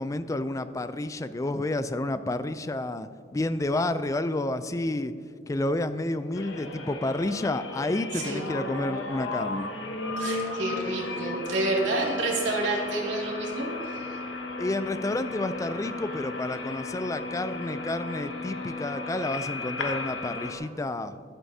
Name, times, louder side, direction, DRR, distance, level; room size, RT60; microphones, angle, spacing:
voice 1, 0.0-5.1 5.5-9.7 14.6-21.2, left 2 dB, 15° left, 12 dB, 0.3 m, -30 dB
sound 1, 6.3-20.6, left 2 dB, 85° left, 1.1 m, -35 dB
voice 2, 8.1-8.5 10.2-14.2, right 2 dB, 90° right, -3 dB, 2.4 m, -29 dB
12.5 x 11.0 x 2.8 m, 2.1 s
head